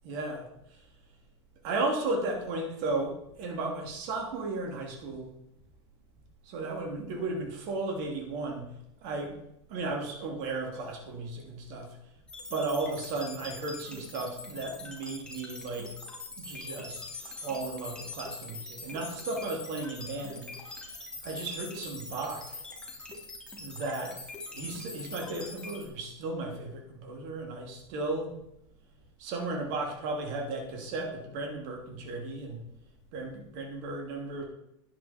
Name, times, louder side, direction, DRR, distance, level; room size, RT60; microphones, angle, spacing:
voice 1, 0.0-0.8 1.6-5.3 6.4-8.7 9.0-9.4 9.7-11.9 12.5-15.9 16.4-22.6 23.6-24.2 24.5-28.3 29.2-32.6 33.1-34.4, right 2 dB, 60° right, 1 dB, 3.0 m, -35 dB
sound 1, 12.3-25.9, left 3 dB, 5° left, 3.3 m, -43 dB
11.5 x 9.7 x 4.5 m, 0.82 s
hypercardioid pair, 110°, 15 cm